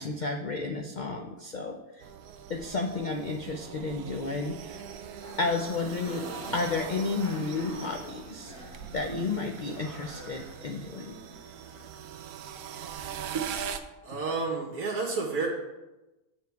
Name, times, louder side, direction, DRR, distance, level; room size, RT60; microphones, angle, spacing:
voice 1, 0.0-2.0 2.5-4.8 5.4-6.3 6.5-8.5 8.9-11.2, left 3 dB, 60° left, 3 dB, 0.4 m, -32 dB
sound 1, 2.0-13.8, right 8 dB, 90° right, 1.1 m, -42 dB
sound 2, 5.2-11.9, right 1 dB, 85° left, 2.7 m, -44 dB
voice 2, 14.0-15.5, right 4 dB, 70° right, -2 dB, 1.6 m, -30 dB
7.1 x 7.0 x 4.6 m, 1.0 s
omnidirectional pair, 1.6 m